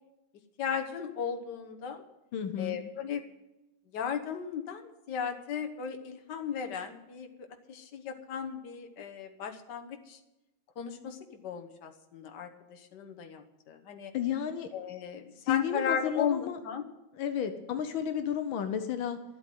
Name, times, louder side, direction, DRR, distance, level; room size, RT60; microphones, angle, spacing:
voice 1, 0.6-2.0 2.6-3.2 3.9-10.2 10.8-14.1 14.7-16.9, left 7 dB, 65° left, 6 dB, 1.7 m, -36 dB
voice 2, 2.3-2.8 14.1-14.7 15.4-16.6 17.2-19.2, left 9 dB, 80° left, 8 dB, 1.7 m, -32 dB
12.5 x 8.0 x 9.1 m, 0.96 s
omnidirectional pair, 2.1 m